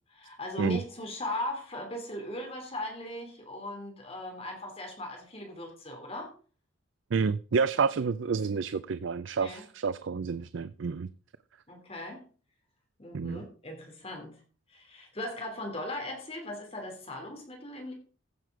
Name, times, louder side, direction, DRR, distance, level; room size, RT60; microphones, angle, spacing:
voice 1, 0.1-6.3 9.4-9.7 11.7-12.3 13.0-14.4 14.7-17.9, left 1 dB, 30° left, 2.9 m, -38 dB
voice 2, 7.1-11.1 13.1-13.4, right 5 dB, 70° right, 0.4 m, -29 dB
15.0 x 6.7 x 4.7 m
head